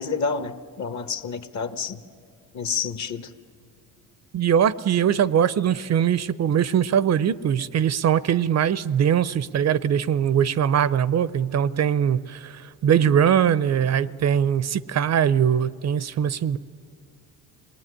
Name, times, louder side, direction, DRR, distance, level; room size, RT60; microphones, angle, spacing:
voice 1, 0.0-2.0 2.5-3.3 13.0-13.1, left 5 dB, 45° left, 10 dB, 1.4 m, -29 dB
voice 2, 4.3-16.6, right 9 dB, 45° right, 17 dB, 0.6 m, -21 dB
26.5 x 20.0 x 9.8 m, 2.2 s
cardioid pair, 105°, 38 cm